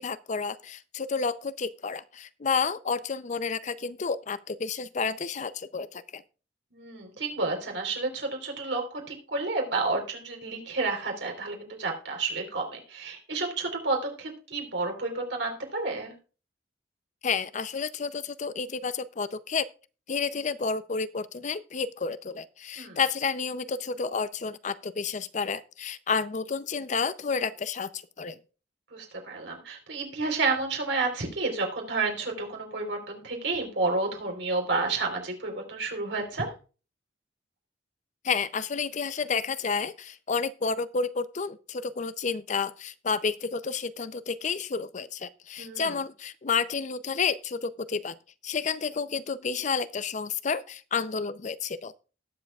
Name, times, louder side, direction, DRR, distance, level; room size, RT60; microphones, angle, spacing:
voice 1, 0.0-6.2 17.2-19.7 20.1-28.4 38.2-48.1 48.4-51.9, left 5 dB, 40° left, 0.5 m, -30 dB
voice 2, 6.7-16.1 22.8-23.0 28.9-36.5 45.6-45.9, right 3 dB, 75° right, 3.7 m, -30 dB
19.5 x 7.4 x 2.4 m
head